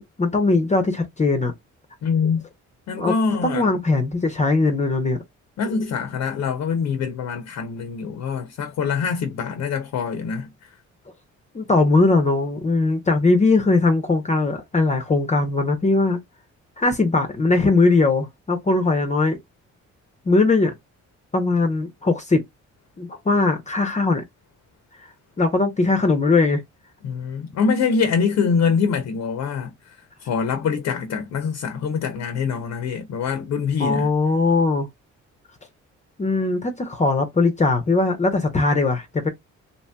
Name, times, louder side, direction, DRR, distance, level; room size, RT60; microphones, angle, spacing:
voice 1, 0.0-1.5 3.0-3.1 3.4-5.2 11.5-16.2 16.8-19.4 20.3-20.7 21.3-22.4 23.0-24.2 25.4-26.6 33.8-34.9 36.2-39.3, left 3 dB, 25° left, 0.6 m, -20 dB
voice 2, 2.0-2.4 2.9-3.7 5.6-10.5 27.0-29.7 30.2-34.1, left 5 dB, 65° left, 0.7 m, -24 dB
2.9 x 2.7 x 2.2 m
cardioid pair, 90°, 30 cm